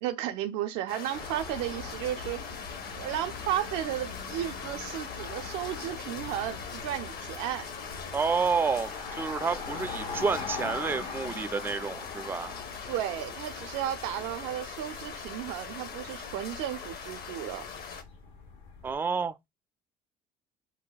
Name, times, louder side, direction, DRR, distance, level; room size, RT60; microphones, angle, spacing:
voice 1, 0.0-2.4 2.9-7.7 12.9-17.6, right 12 dB, 80° right, 0.5 m, -34 dB
sound 1, 0.9-18.0, left 6 dB, 55° left, 0.8 m, -41 dB
sound 2, 1.1-18.9, left 4 dB, 85° left, 1.2 m, -42 dB
voice 2, 8.1-12.5 18.8-19.5, right 5 dB, 10° right, 0.3 m, -29 dB
2.7 x 2.2 x 3.9 m
hypercardioid pair, 70°, 19 cm